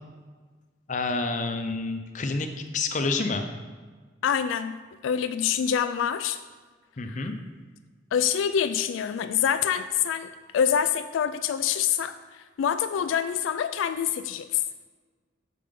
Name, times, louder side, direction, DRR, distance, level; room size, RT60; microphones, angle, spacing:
voice 1, 0.9-2.5 2.7-3.5 7.0-7.3, left 3 dB, 40° left, 6 dB, 0.6 m, -28 dB
voice 2, 4.2-4.8 5.0-6.4 7.1-7.3 8.1-14.6, left 8 dB, 80° left, 11 dB, 0.3 m, -26 dB
6.8 x 5.3 x 5.1 m, 1.4 s
head